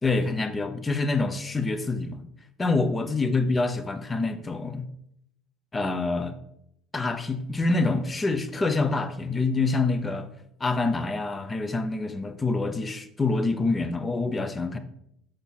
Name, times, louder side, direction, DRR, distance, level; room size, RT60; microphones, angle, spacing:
voice 1, 0.0-2.2 2.6-4.9 5.7-6.3 6.9-10.3 10.6-14.8, left 3 dB, 25° left, 9 dB, 0.8 m, -26 dB
6.6 x 4.5 x 4.4 m, 0.78 s
hypercardioid pair, 75°, 0 cm